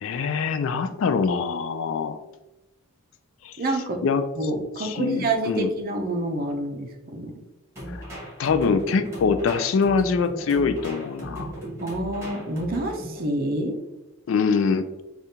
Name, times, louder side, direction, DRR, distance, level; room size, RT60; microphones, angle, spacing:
voice 1, 0.0-2.2 3.4-3.5 4.0-4.2 4.8-5.7 7.9-8.0 8.4-11.5 14.3-14.9, left 5 dB, 60° left, 10 dB, 0.3 m, -24 dB
voice 2, 3.6-4.0 4.4-7.3 11.8-13.8, right 2 dB, 40° right, 3 dB, 0.5 m, -27 dB
sound 1, 7.8-13.2, equal, 15° right, 1.3 m, -37 dB
5.0 x 2.4 x 2.8 m, 1.0 s
head